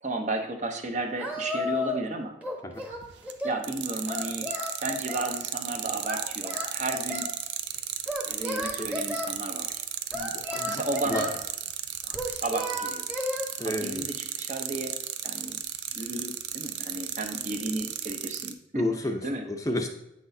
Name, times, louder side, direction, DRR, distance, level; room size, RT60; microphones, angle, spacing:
voice 1, 0.0-2.4 3.4-4.5 4.8-7.3 8.3-9.9 10.7-11.3 12.0-13.1 13.6-15.0 15.2-15.6 15.9-18.8 19.2-19.4, right 2 dB, 40° right, 4 dB, 0.8 m, -33 dB
Singing, 1.2-2.1 2.4-3.6 4.1-5.3 6.0-7.3 8.1-9.3 10.1-11.4 12.1-13.5, left 1 dB, 10° right, 1.0 m, -33 dB
sound 1, 2.9-3.3 3.6-18.5, right 11 dB, 80° right, 0.5 m, -34 dB
voice 2, 10.1-10.8 11.1-11.2 13.6-14.1 18.7-19.2 19.5-19.9, left 1 dB, 20° left, 4 dB, 0.6 m, -31 dB
8.8 x 6.0 x 2.7 m, 0.84 s
head